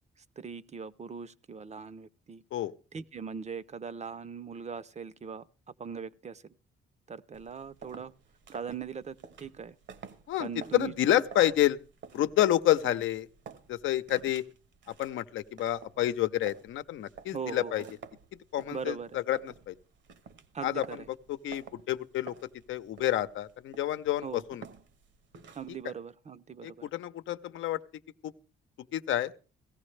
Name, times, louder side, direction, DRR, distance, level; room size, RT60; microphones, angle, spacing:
voice 1, 0.4-2.4 2.9-5.5 5.8-6.5 7.1-8.1 8.5-9.8 10.4-11.3 12.8-13.0 17.3-17.9 18.7-19.2 20.5-21.1 24.2-24.5 25.5-26.9, right 6 dB, 35° right, 17 dB, 0.6 m, -40 dB
sound 1, 7.3-25.8, right 6 dB, 65° right, 1.2 m, -51 dB
voice 2, 10.3-11.8 12.1-13.3 13.7-14.4 15.0-17.8 18.5-19.7 20.6-20.8 21.3-22.3 22.7-24.6 26.6-27.8 28.2-28.3 28.9-29.3, left 13 dB, 80° left, 11 dB, 0.8 m, -29 dB
17.5 x 14.0 x 3.3 m, 0.36 s
cardioid pair, 90°, 20 cm